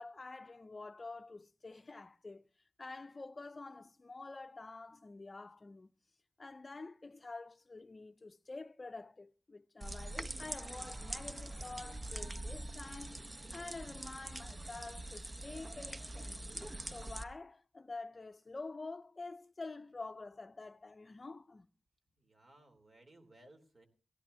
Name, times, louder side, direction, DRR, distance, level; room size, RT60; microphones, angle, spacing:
voice 1, 0.0-2.5 2.8-5.9 6.4-16.5 16.8-21.7, left 3 dB, 40° left, 0.6 m, -48 dB
sound 1, 9.8-17.2, right 1 dB, 30° right, 0.8 m, -44 dB
voice 2, 22.2-23.9, right 1 dB, 55° right, 3.2 m, -61 dB
18.0 x 16.5 x 2.7 m
wide cardioid pair, 85°, 0 cm